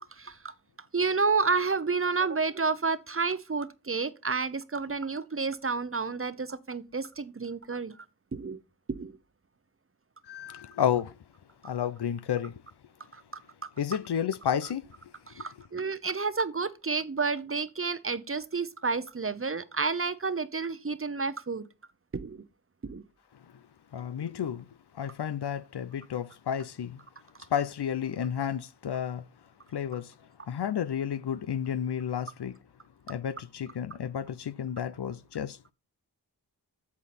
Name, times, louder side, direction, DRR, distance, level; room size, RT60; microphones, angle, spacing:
voice 1, 0.2-0.5 0.9-8.0 8.3-8.6 8.9-9.2 13.1-13.7 15.3-21.7 22.1-22.4 22.8-23.0, right 4 dB, 35° right, 0.8 m, -30 dB
voice 2, 10.3-11.1 11.6-12.6 13.8-14.9 15.4-15.5 23.9-24.6 24.9-27.0 27.5-29.2 29.7-30.1 30.5-32.5 33.1-35.7, left 9 dB, 80° left, 0.7 m, -31 dB
8.4 x 7.4 x 4.2 m
wide cardioid pair, 85°, 40 cm